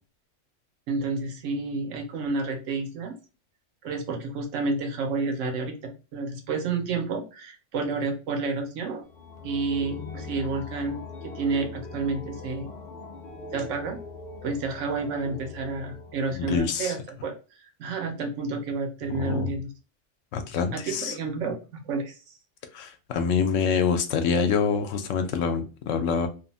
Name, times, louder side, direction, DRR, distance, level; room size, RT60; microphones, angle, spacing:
voice 1, 0.9-3.1 3.8-9.1 9.4-12.7 13.5-14.0 14.4-19.7 20.7-22.3, right 4 dB, 85° right, 1.0 m, -30 dB
sound 1, 9.0-16.6, left 4 dB, 45° left, 0.6 m, -41 dB
voice 2, 16.3-16.9 19.1-19.5 20.3-21.1 22.7-26.3, left 6 dB, 90° left, 0.9 m, -26 dB
3.0 x 2.0 x 2.6 m
omnidirectional pair, 1.3 m